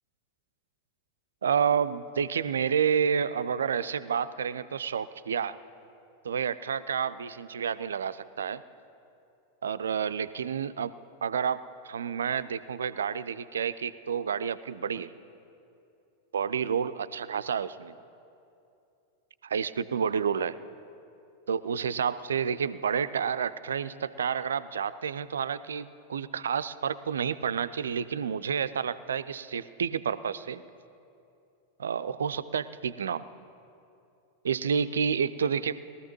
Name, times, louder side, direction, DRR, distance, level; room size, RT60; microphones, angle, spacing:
voice 1, 1.4-5.6 6.2-8.6 9.6-10.9 11.2-15.1 16.3-17.9 19.4-20.6 21.5-30.6 31.8-33.2 34.4-35.8, right 7 dB, 65° right, 15 dB, 0.4 m, -29 dB
21.0 x 14.0 x 3.1 m, 2.7 s
figure-of-eight pair, 90°, 0 cm